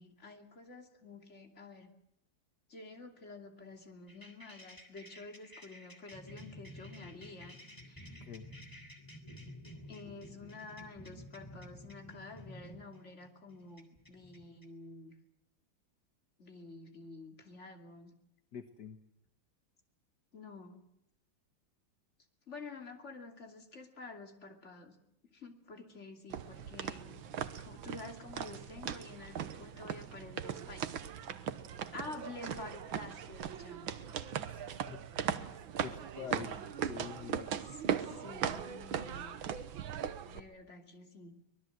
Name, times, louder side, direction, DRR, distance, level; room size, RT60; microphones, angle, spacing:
voice 1, 0.0-1.9 2.7-7.6 7.9-8.2 9.9-15.1 16.4-18.1 20.3-20.8 22.5-25.0 25.3-30.8 31.9-33.9 37.6-37.8 38.0-39.4 40.3-41.4, left 3 dB, 35° left, 3 dB, 3.0 m, -49 dB
sound 1, 4.1-14.7, left 1 dB, 10° left, 3.0 m, -52 dB
voice 2, 18.5-19.0 34.4-35.0 35.5-37.5, left 7 dB, 60° left, 7 dB, 1.9 m, -46 dB
sound 2, 26.3-40.4, right 8 dB, 85° right, 1.9 m, -39 dB
24.5 x 20.0 x 7.9 m, 0.80 s
omnidirectional pair, 2.1 m